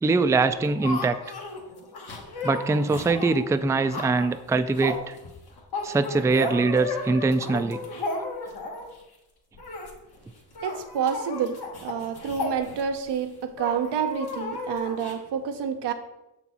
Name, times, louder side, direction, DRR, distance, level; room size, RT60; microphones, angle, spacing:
voice 1, 0.0-1.2 2.4-5.2 5.8-7.8, right 3 dB, 10° right, 11 dB, 0.3 m, -23 dB
sound 1, 0.5-9.0 9.5-9.9 10.2-10.3 10.5-13.1 13.6-15.1, left 2 dB, 70° left, 1.4 m, -34 dB
voice 2, 10.6-15.9, right 7 dB, 80° right, 7 dB, 0.7 m, -28 dB
6.5 x 4.4 x 4.1 m, 0.96 s
supercardioid pair, 45°, 40 cm